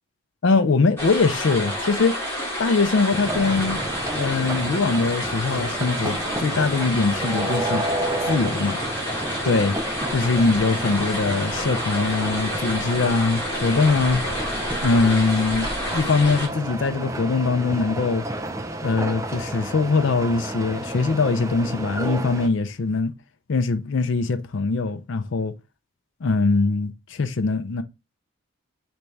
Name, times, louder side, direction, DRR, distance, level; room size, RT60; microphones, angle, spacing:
voice 1, 0.4-2.1 2.6-7.8 8.3-8.8 9.4-9.8 10.1-14.2 14.8-18.2 18.8-23.1 23.5-25.5 26.2-27.8, left 4 dB, 55° left, 0.4 m, -22 dB
sound 1, 1.0-16.5, equal, 10° left, 2.4 m, -29 dB
sound 2, 3.1-22.5, right 1 dB, 15° right, 0.4 m, -31 dB
4.0 x 3.4 x 3.2 m
head